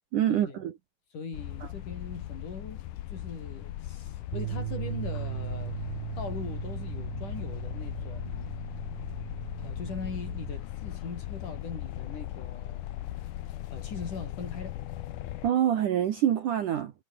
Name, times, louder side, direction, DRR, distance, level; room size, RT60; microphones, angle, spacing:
voice 1, 0.1-0.7 15.4-16.9, right 10 dB, 60° right, 2.4 m, -25 dB
voice 2, 1.1-2.8 3.1-5.8 6.2-8.5 9.6-12.9 13.7-14.7, left 4 dB, 45° left, 6.4 m, -40 dB
sound 1, 1.3-15.5, left 14 dB, 70° left, 2.0 m, -38 dB
sound 2, 4.3-10.6, right 17 dB, 75° right, 3.0 m, -38 dB
omnidirectional pair, 5.0 m